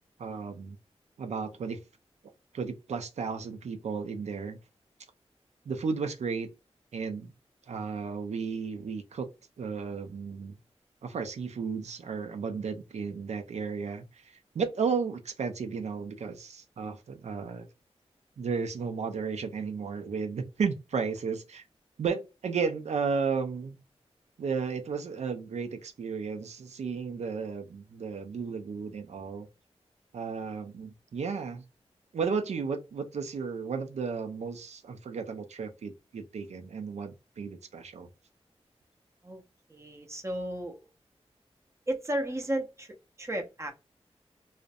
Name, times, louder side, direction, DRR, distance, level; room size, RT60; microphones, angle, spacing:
voice 1, 0.2-0.8 1.2-1.8 2.5-4.6 5.7-6.5 6.9-7.3 7.7-9.3 9.6-10.6 11.0-17.7 18.4-21.6 22.0-23.8 24.4-29.5 30.1-31.6 32.1-38.1, right 5 dB, 85° right, 0.4 m, -34 dB
voice 2, 39.7-40.9 41.9-43.7, right 1 dB, 25° right, 0.6 m, -34 dB
2.4 x 2.0 x 2.5 m
wide cardioid pair, 100°, 11 cm